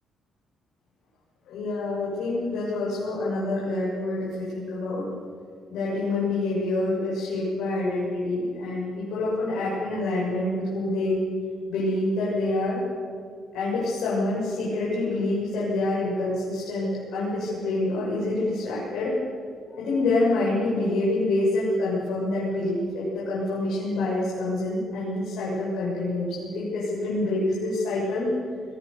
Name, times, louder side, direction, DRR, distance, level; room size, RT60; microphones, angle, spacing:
voice 1, 1.5-5.1 5.7-11.2 11.7-12.8 13.5-19.1 19.7-28.3, left 2 dB, 85° left, -6 dB, 7.2 m, -27 dB
22.0 x 21.0 x 7.1 m, 2.2 s
cardioid pair, 90°, 0 cm